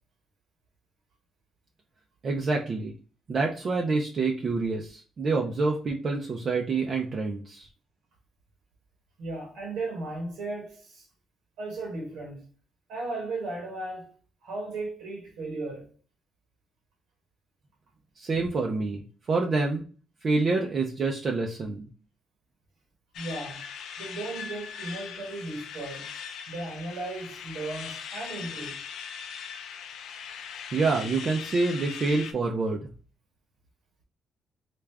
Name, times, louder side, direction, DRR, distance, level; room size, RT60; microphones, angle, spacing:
voice 1, 2.2-2.9 3.3-7.7 18.2-19.8 20.2-21.9 30.7-32.9, right 3 dB, 45° right, 0.5 m, -27 dB
voice 2, 9.2-11.1 11.6-12.4 12.9-14.1 14.4-15.9 23.1-23.6 24.0-26.1 26.5-28.8, right 2 dB, 90° right, 1.1 m, -36 dB
sound 1, 23.1-32.3, left 7 dB, 80° left, 0.4 m, -40 dB
3.4 x 2.4 x 3.3 m
cardioid pair, 90°, 0 cm